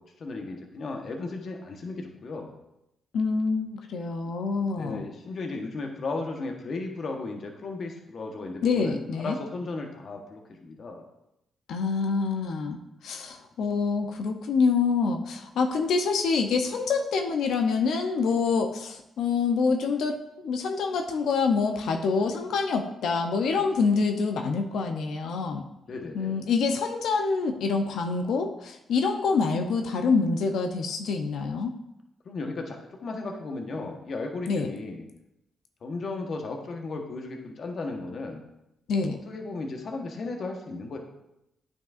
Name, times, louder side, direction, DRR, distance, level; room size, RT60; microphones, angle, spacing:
voice 1, 0.0-2.5 4.8-11.0 23.5-23.6 25.8-26.4 32.2-35.1 35.8-38.4 39.3-41.0, left 3 dB, 55° left, 2 dB, 1.1 m, -35 dB
voice 2, 3.1-5.0 8.6-9.3 11.7-25.6 26.2-31.8 34.5-34.7 38.9-39.2, left 4 dB, 80° left, 4 dB, 0.6 m, -26 dB
9.2 x 5.4 x 2.5 m, 0.86 s
cardioid pair, 95°, 0 cm